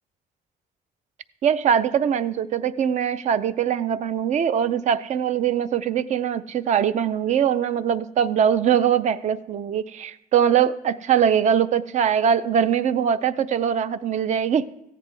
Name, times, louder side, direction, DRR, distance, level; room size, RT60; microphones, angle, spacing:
voice 1, 1.4-14.7, right 8 dB, 50° right, 14 dB, 0.4 m, -22 dB
14.5 x 9.8 x 3.3 m, 0.84 s
cardioid pair, 150°, 16 cm